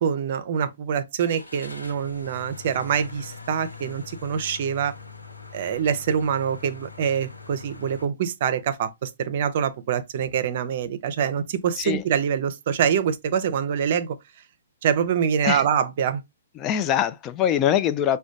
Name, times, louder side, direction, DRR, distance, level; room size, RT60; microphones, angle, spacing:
voice 1, 0.0-4.9 5.5-14.2 14.8-16.2, right 8 dB, 50° right, 0.5 m, -25 dB
Car / Engine starting, 1.2-8.0, left 4 dB, 90° left, 0.7 m, -42 dB
voice 2, 16.6-18.2, left 10 dB, 25° left, 0.3 m, -23 dB
4.9 x 2.2 x 2.4 m
figure-of-eight pair, 125°, 0 cm